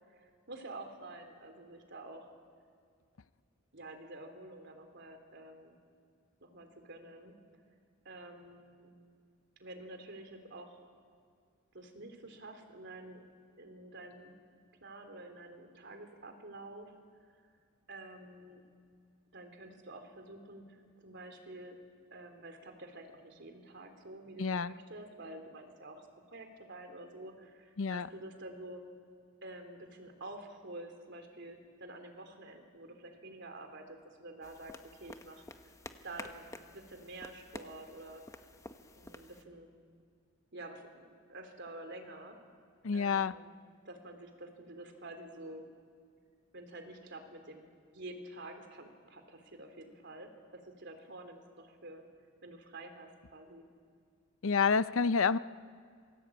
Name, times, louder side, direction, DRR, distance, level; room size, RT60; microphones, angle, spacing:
voice 1, 0.1-2.3 3.7-5.7 6.4-7.3 8.0-8.9 9.6-10.8 11.7-13.2 13.6-14.3 14.8-16.9 17.2-17.3 17.9-18.6 19.3-21.8 22.1-28.8 29.4-35.7 36.0-36.5 36.7-38.2 38.9-39.7 40.5-42.4 42.9-43.5 43.8-45.7 46.5-52.0 52.4-53.6, right 2 dB, 60° right, 5 dB, 3.5 m, -49 dB
voice 2, 24.4-24.7 27.8-28.1 42.8-43.3 54.4-55.4, left 5 dB, 75° left, 15 dB, 0.6 m, -28 dB
sound 1, 34.4-39.4, left 2 dB, 15° left, 1.1 m, -50 dB
27.5 x 22.0 x 8.7 m, 2.1 s
head